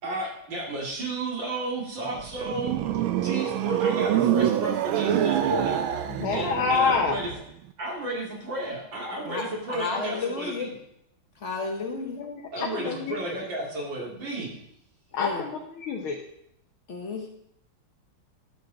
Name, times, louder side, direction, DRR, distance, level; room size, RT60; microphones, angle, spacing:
voice 1, 0.0-2.8 3.2-5.8 6.3-7.3 7.8-10.7 12.5-14.5, right 2 dB, 60° right, -2 dB, 2.9 m, -32 dB
sound 1, 2.1-7.4, right 10 dB, 75° right, 1.4 m, -26 dB
voice 2, 6.1-7.2 11.9-13.2 15.1-16.2, left 5 dB, 80° left, 0 dB, 1.8 m, -27 dB
voice 3, 9.2-10.7 11.4-12.2 15.2-15.4 16.9-17.3, left 4 dB, 45° left, 2 dB, 1.1 m, -32 dB
11.0 x 7.3 x 3.9 m, 0.74 s
omnidirectional pair, 2.3 m